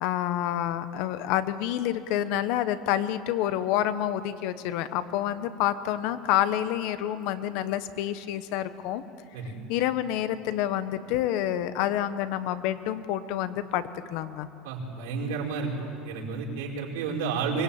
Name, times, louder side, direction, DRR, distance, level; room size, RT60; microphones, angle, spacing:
voice 1, 0.0-9.0 9.7-14.5, left 11 dB, 55° left, 12 dB, 1.1 m, -28 dB
voice 2, 14.6-15.7 16.0-17.6, right 5 dB, 90° right, -2 dB, 5.2 m, -31 dB
24.5 x 20.5 x 8.8 m, 2.7 s
cardioid pair, 175°, 0 cm